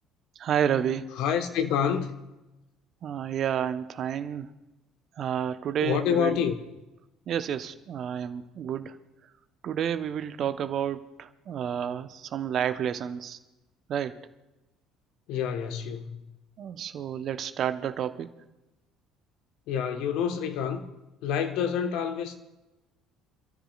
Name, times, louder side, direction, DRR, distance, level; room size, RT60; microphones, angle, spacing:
voice 1, 0.4-1.1 3.0-4.5 5.2-6.4 7.3-9.0 9.6-13.4 13.9-14.3 16.6-18.3, right 9 dB, 50° right, 1.0 m, -30 dB
voice 2, 1.2-2.1 5.8-6.5 15.3-16.3 19.7-20.9 21.2-22.3, left 8 dB, 65° left, 1.4 m, -27 dB
27.5 x 13.5 x 2.5 m
hypercardioid pair, 60°, 0 cm